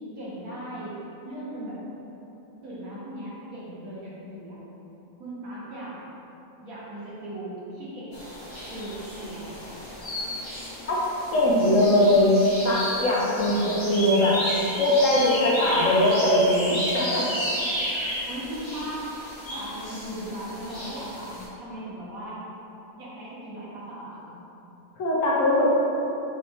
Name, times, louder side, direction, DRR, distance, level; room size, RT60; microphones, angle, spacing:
voice 1, 0.2-1.0 1.2-1.8 2.6-4.6 5.2-6.0 6.6-8.1 8.7-9.6 13.3-13.8 18.2-19.1 19.5-22.4 23.0-24.3, right 1 dB, 70° right, -9 dB, 1.6 m, -37 dB
sound 1, 8.1-21.5, equal, 30° left, 0.5 m, -33 dB
voice 2, 11.3-12.4 12.6-14.4 14.8-17.3 25.0-25.7, left 1 dB, 65° left, -5 dB, 1.1 m, -21 dB
5.3 x 2.7 x 3.4 m, 3.0 s
omnidirectional pair, 1.5 m